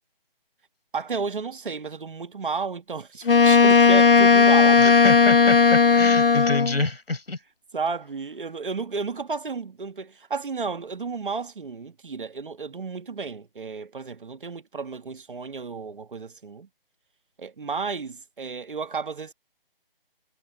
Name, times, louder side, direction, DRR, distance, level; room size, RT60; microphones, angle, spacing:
voice 1, 0.9-5.0 7.7-16.7 17.4-19.3, right 5 dB, 60° right, 1.9 m, -32 dB
Wind instrument woodwind instrument, 3.3-6.8, left 5 dB, 70° left, 1.4 m, -16 dB
voice 2, 4.8-7.4, left 2 dB, 85° left, 5.9 m, -27 dB
figure-of-eight pair, 165°, 29 cm